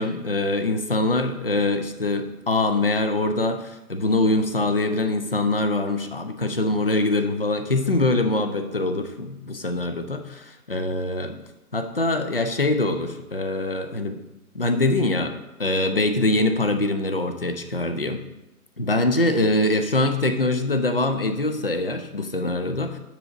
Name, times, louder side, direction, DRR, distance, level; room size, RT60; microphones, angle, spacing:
voice 1, 0.0-11.4 11.7-14.2 14.5-18.2 18.8-23.0, left 2 dB, 40° left, 8 dB, 0.4 m, -23 dB
7.4 x 6.4 x 3.9 m, 0.98 s
hypercardioid pair, 175°, 45 cm